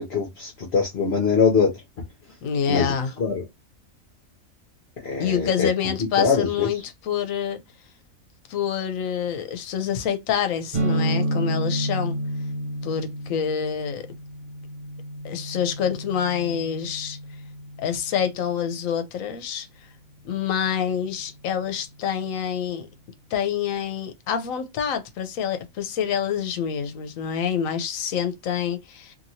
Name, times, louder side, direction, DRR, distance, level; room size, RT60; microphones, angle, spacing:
voice 1, 0.0-1.7 2.7-2.9 3.2-3.4 5.0-5.7 6.2-6.7, left 5 dB, 55° left, 0.9 m, -22 dB
voice 2, 2.4-3.1 5.2-7.6 8.5-12.2 12.8-14.1 15.2-17.2 17.8-19.7 20.2-22.9 23.3-29.2, left 8 dB, 75° left, 1.0 m, -27 dB
sound 1, 10.7-18.3, right 1 dB, 55° right, 1.2 m, -30 dB
2.9 x 2.7 x 2.7 m
omnidirectional pair, 1.4 m